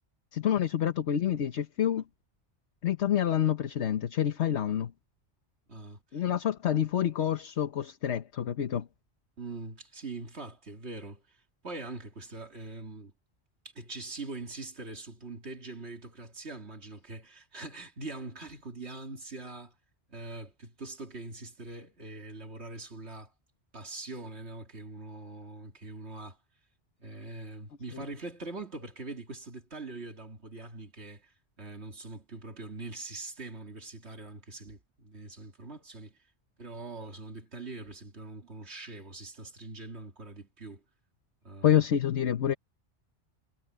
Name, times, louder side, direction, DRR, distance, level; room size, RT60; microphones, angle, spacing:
voice 1, 0.3-2.0 2.8-4.9 6.1-8.9 27.9-28.0 41.6-42.5, left 10 dB, 75° left, 1.3 m, -27 dB
voice 2, 5.7-6.2 9.4-11.4 11.6-13.1 13.7-19.7 20.1-23.3 23.7-26.4 27.0-36.2 36.6-40.8 41.4-41.9, right 3 dB, 70° right, 2.9 m, -43 dB
omnidirectional pair, 1.2 m